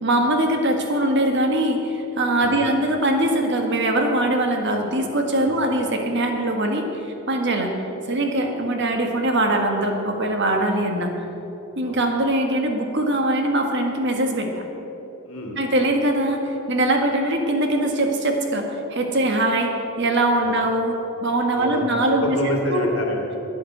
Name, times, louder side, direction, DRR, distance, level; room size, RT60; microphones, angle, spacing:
voice 1, 0.0-7.7 8.1-11.1 11.8-14.6 15.6-19.7 20.0-20.9 21.2-22.9, right 1 dB, 50° right, 3 dB, 1.6 m, -22 dB
voice 2, 15.2-15.6 20.4-20.6 21.5-23.4, left 1 dB, 75° left, 0 dB, 2.7 m, -27 dB
11.5 x 9.3 x 8.0 m, 3.0 s
head